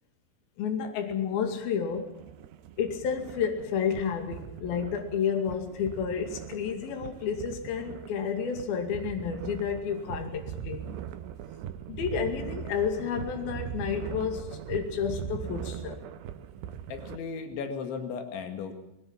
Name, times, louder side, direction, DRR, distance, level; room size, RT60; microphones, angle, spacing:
voice 1, 0.6-2.0 2.8-10.8 11.9-14.4 14.7-16.0, left 7 dB, 60° left, 5 dB, 4.0 m, -30 dB
sound 1, 1.9-17.2, right 9 dB, 75° right, 3.1 m, -40 dB
voice 2, 16.9-18.7, left 5 dB, 90° left, 6 dB, 4.4 m, -36 dB
20.5 x 19.5 x 7.5 m, 0.86 s
omnidirectional pair, 5.1 m